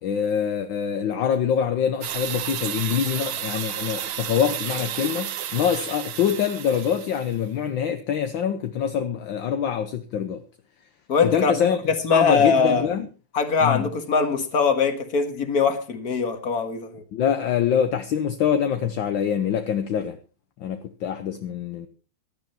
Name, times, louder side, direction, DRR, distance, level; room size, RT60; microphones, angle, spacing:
voice 1, 0.0-10.4 11.2-11.8 12.1-13.1 13.6-13.9 17.1-20.2 20.6-21.9, left 8 dB, 65° left, 1.6 m, -25 dB
sound 1, 2.0-7.4, right 10 dB, 70° right, 1.8 m, -32 dB
voice 2, 11.1-11.5 11.9-12.9 13.3-17.0, left 5 dB, 45° left, 2.2 m, -22 dB
16.5 x 11.5 x 4.4 m
omnidirectional pair, 2.4 m